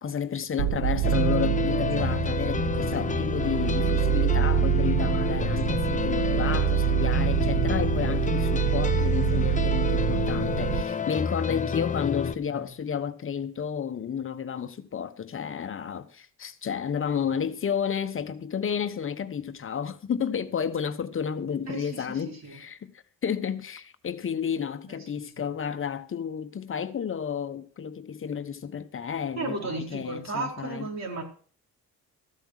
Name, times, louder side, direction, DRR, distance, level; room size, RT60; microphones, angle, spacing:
voice 1, 0.0-22.9 23.2-30.9, left 7 dB, 45° left, 1.1 m, -31 dB
sound 1, 0.6-10.8, right 14 dB, 85° right, 0.7 m, -26 dB
sound 2, 1.0-12.3, left 5 dB, 25° left, 0.8 m, -29 dB
voice 2, 21.7-22.6 24.9-25.4 29.4-31.2, right 3 dB, 60° right, 4.5 m, -35 dB
14.0 x 8.0 x 6.5 m
cardioid pair, 90°, 30 cm